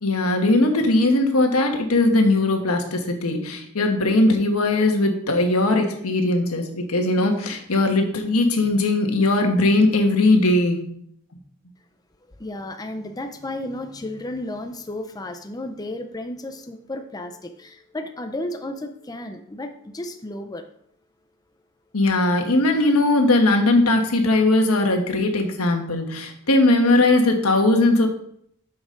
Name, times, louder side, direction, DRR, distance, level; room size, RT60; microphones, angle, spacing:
voice 1, 0.0-10.9 21.9-28.1, left 2 dB, 90° left, 4 dB, 1.4 m, -19 dB
voice 2, 12.3-20.6, left 1 dB, 15° left, 6 dB, 0.5 m, -33 dB
8.7 x 6.2 x 3.8 m, 0.68 s
head